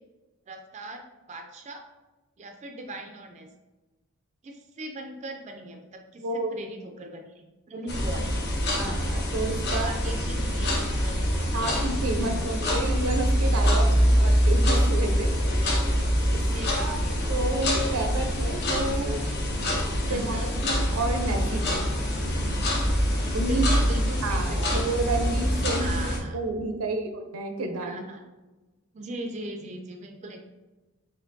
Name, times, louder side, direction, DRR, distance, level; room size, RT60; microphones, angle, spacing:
voice 1, 0.5-1.0 1.3-1.8 2.4-3.5 4.4-6.2 6.5-7.3 7.7-8.3 9.7-11.5 12.1-12.3 16.5-17.2 20.1-20.5 23.5-24.8 25.8-26.4 27.8-28.2 28.9-30.4, right 1 dB, 35° right, 4 dB, 0.4 m, -39 dB
voice 2, 6.2-6.6 8.7-10.2 11.5-15.8 16.3-16.4 16.8-17.0 17.3-19.2 20.0-21.9 22.9-23.0 23.3-23.7 24.2-28.0, right 2 dB, 85° right, 5 dB, 0.6 m, -31 dB
sound 1, 7.9-26.2, equal, 50° left, 0.7 m, -25 dB
4.3 x 3.0 x 2.6 m, 1.1 s
head